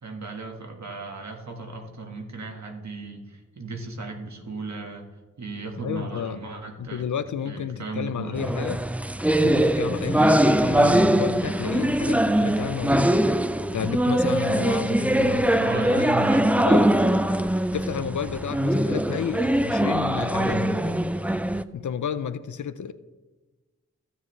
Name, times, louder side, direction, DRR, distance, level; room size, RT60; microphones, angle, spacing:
voice 1, 0.0-5.0 5.4-7.0 7.4-8.4 15.6-16.6, right 3 dB, 65° right, 2 dB, 1.6 m, -35 dB
voice 2, 5.8-6.4 6.8-8.8 9.4-13.1 13.7-16.0 16.5-17.0 17.7-21.0 21.7-22.9, left 8 dB, 75° left, 12 dB, 0.5 m, -31 dB
sound 1, 8.4-21.6, right 1 dB, 5° right, 0.4 m, -22 dB
15.0 x 7.4 x 3.2 m, 1.2 s
cardioid pair, 45°, 30 cm